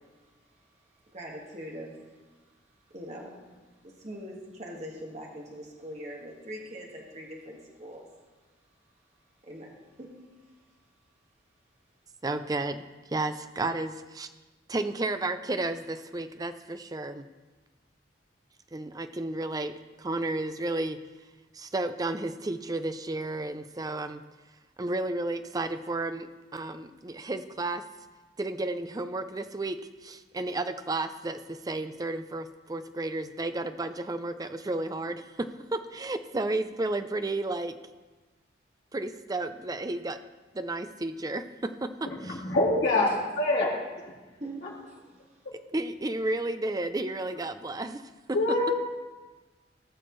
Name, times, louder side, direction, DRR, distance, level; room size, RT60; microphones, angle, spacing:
voice 1, 1.1-2.0 2.9-3.4 3.8-8.1 9.4-10.1 42.9-43.2 44.4-45.0, equal, 35° right, -2 dB, 1.7 m, -42 dB
voice 2, 12.2-12.8 13.1-14.3 14.7-17.2 18.7-19.7 20.0-21.0 21.5-24.2 24.8-27.8 28.4-37.8 38.9-40.2 40.5-41.9 42.2-42.4 45.7-48.0, right 2 dB, 20° right, 10 dB, 0.4 m, -32 dB
voice 3, 42.2-43.1 43.4-43.7 48.3-48.7, left 2 dB, 65° left, -6 dB, 3.2 m, -24 dB
18.5 x 6.4 x 3.1 m, 1.2 s
head